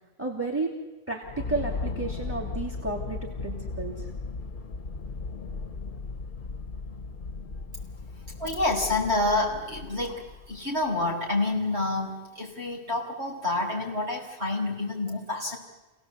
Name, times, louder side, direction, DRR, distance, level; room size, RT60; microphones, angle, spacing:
voice 1, 0.2-0.8 1.1-4.1, right 3 dB, 10° right, 0 dB, 2.8 m, -32 dB
sound 1, 1.2-10.8, left 4 dB, 50° left, 1.1 m, -36 dB
voice 2, 8.4-15.6, left 2 dB, 75° right, -2 dB, 5.7 m, -28 dB
27.5 x 17.5 x 8.3 m, 1.1 s
omnidirectional pair, 1.1 m